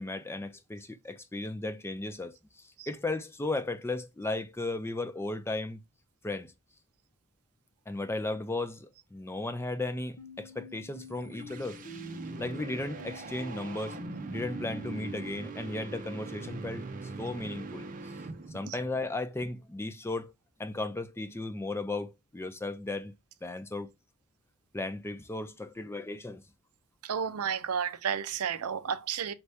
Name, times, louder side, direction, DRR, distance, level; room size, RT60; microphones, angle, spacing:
voice 1, 0.0-2.4 2.9-5.8 6.2-6.5 7.9-11.8 12.4-14.0 14.3-17.9 18.5-20.3 20.6-23.1 23.4-23.9 24.7-26.4, left 2 dB, 10° left, 0.4 m, -35 dB
sound 1, 10.2-15.2, left 3 dB, 80° left, 0.8 m, -48 dB
sound 2, 11.0-18.7, right 3 dB, 40° right, 0.6 m, -41 dB
voice 2, 27.0-29.3, right 7 dB, 90° right, 0.5 m, -32 dB
4.5 x 2.7 x 3.3 m
head